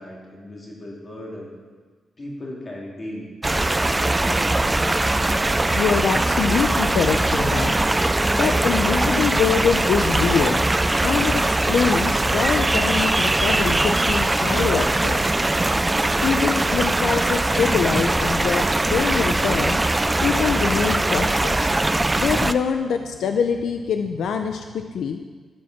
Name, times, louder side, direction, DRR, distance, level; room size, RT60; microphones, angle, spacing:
voice 1, 0.0-1.5 2.2-3.3, left 1 dB, 25° left, -3 dB, 2.5 m, -36 dB
sound 1, 3.4-22.5, right 2 dB, 10° right, 0.3 m, -21 dB
voice 2, 5.7-7.8 8.4-10.6 11.0-15.3 16.2-19.8 20.2-21.7 22.2-25.2, left 6 dB, 80° left, 6 dB, 0.6 m, -24 dB
11.5 x 7.6 x 5.9 m, 1.4 s
wide cardioid pair, 175°, 0 cm